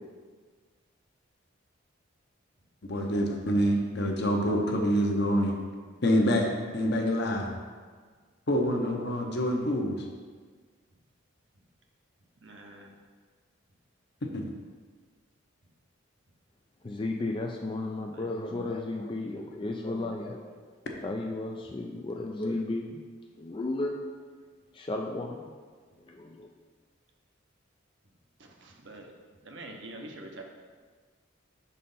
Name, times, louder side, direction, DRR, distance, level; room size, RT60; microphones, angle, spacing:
voice 1, 2.9-5.6 6.0-6.5 6.7-7.5 8.5-10.0 14.3-14.4, equal, 55° left, 1 dB, 0.9 m, -26 dB
voice 2, 12.4-12.9 18.1-18.3 28.4-29.1 29.4-30.4, right 2 dB, 60° right, 2 dB, 0.8 m, -45 dB
voice 3, 16.8-20.7 21.0-23.0 23.4-24.0 24.7-25.4 26.1-26.5, left 2 dB, 25° left, 2 dB, 0.3 m, -34 dB
6.4 x 4.2 x 5.4 m, 1.5 s
head